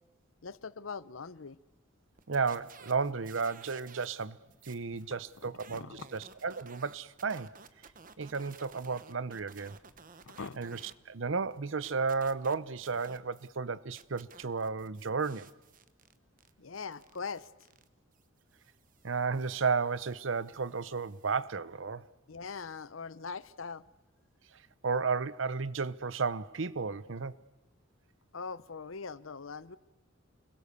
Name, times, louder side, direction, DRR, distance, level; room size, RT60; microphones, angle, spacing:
voice 1, 0.4-1.6 5.1-6.1 10.2-10.9 16.6-17.5 22.3-23.8 28.3-29.8, left 5 dB, 80° left, 0.8 m, -42 dB
sound 1, 2.2-4.2 4.5-10.9 11.3-13.6 13.9-21.4, right 6 dB, 45° right, 1.1 m, -56 dB
voice 2, 2.3-4.4 4.6-7.6 8.2-9.8 10.6-10.8 11.1-15.5 19.0-22.1 24.8-27.4, right 4 dB, 70° right, 0.8 m, -33 dB
28.5 x 21.5 x 6.8 m
head